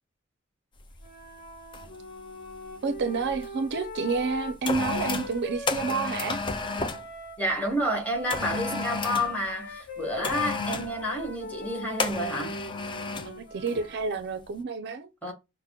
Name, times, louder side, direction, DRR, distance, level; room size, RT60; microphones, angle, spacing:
sound 1, 0.9-1.1 1.7-2.0 2.3-3.5 4.1-7.1 8.3-9.4 10.2-10.9 12.0-13.3 13.7-13.9, left 4 dB, 25° left, 0.3 m, -32 dB
Wind instrument woodwind instrument, 1.0-7.4 8.1-14.1, left 1 dB, 55° left, 1.3 m, -41 dB
voice 1, 2.8-6.4 13.2-15.3, right 4 dB, 55° right, 0.4 m, -30 dB
voice 2, 7.4-12.6 15.2-15.3, equal, 5° left, 1.1 m, -29 dB
5.7 x 2.0 x 2.2 m
head